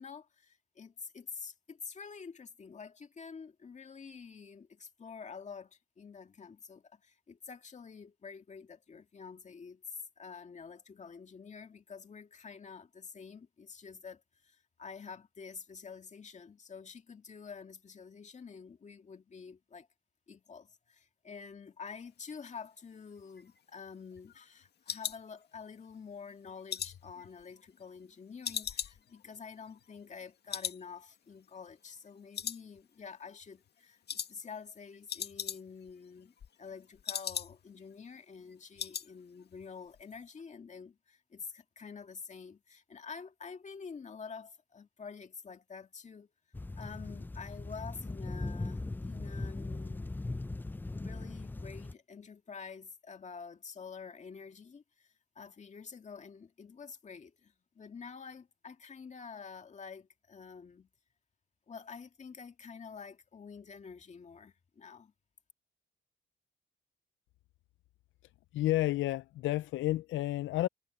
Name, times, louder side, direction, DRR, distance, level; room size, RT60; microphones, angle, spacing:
voice 1, 0.0-19.9 20.3-36.3 36.6-46.3 46.8-50.1 50.9-60.9 61.7-65.1, left 5 dB, 35° left, 2.0 m, -48 dB
sound 1, 23.2-25.9 26.3-28.1 28.4-30.2 30.5-30.9 31.1-31.2 31.7-32.1 32.3-33.1 33.4-33.7 34.1-34.3 34.6-34.7 34.9-35.9 36.2-37.8 38.1-38.2 38.5-39.1 39.4-39.7 39.9-40.0, left 8 dB, 55° left, 1.9 m, -40 dB
sound 2, 46.5-51.9, left 2 dB, 10° left, 0.4 m, -39 dB
voice 2, 68.5-70.7, left 16 dB, 75° left, 0.5 m, -31 dB
cardioid pair, 90°, 20 cm